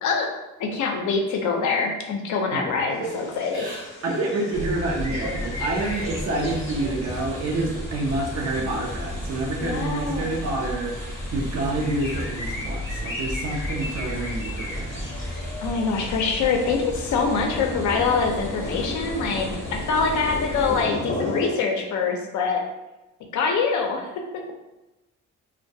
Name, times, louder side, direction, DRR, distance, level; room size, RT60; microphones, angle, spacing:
voice 1, 0.6-3.7 9.6-10.3 15.6-22.6 23.3-24.4, left 4 dB, 75° left, 3 dB, 0.5 m, -24 dB
Crying sobbing / Breathing, 2.9-7.5 7.8-8.8 9.2-10.0, right 1 dB, 75° right, 1.0 m, -39 dB
sound 1, 3.0-21.5, left 2 dB, 40° left, 0.8 m, -36 dB
voice 2, 4.0-10.9 11.3-15.1, right 2 dB, 55° right, -1 dB, 0.5 m, -28 dB
sound 2, 4.5-20.8, left 1 dB, 10° left, 0.6 m, -34 dB
2.2 x 2.2 x 2.6 m, 1.0 s
cardioid pair, 90°, 30 cm